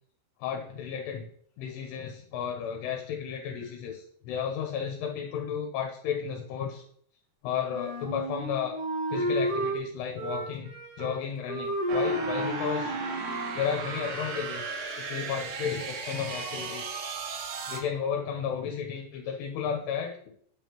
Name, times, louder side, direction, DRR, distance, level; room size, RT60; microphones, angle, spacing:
voice 1, 0.4-1.3 1.6-6.9 7.4-8.8 9.1-13.0 13.5-14.7 15.0-17.0 17.7-20.2, left 7 dB, 80° left, 2 dB, 2.8 m, -33 dB
Wind instrument woodwind instrument, 7.7-9.8 10.2-11.2 11.5-13.7, right 1 dB, 90° right, 1.2 m, -32 dB
sound 1, 11.9-17.8, right 4 dB, 70° right, 2.2 m, -36 dB
8.4 x 5.2 x 2.9 m, 0.62 s
omnidirectional pair, 4.8 m